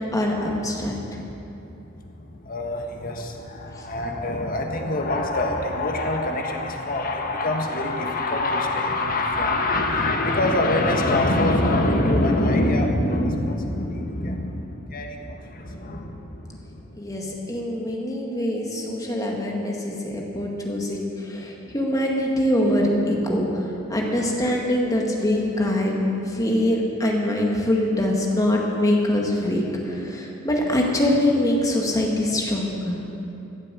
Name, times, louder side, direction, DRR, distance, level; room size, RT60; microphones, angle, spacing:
voice 1, 0.1-1.2 3.8-3.9 17.0-33.0, left 1 dB, 20° left, -1 dB, 1.9 m, -24 dB
voice 2, 2.0-17.0 17.3-17.4, left 1 dB, 45° left, 2 dB, 1.5 m, -24 dB
15.0 x 7.6 x 8.3 m, 2.9 s
head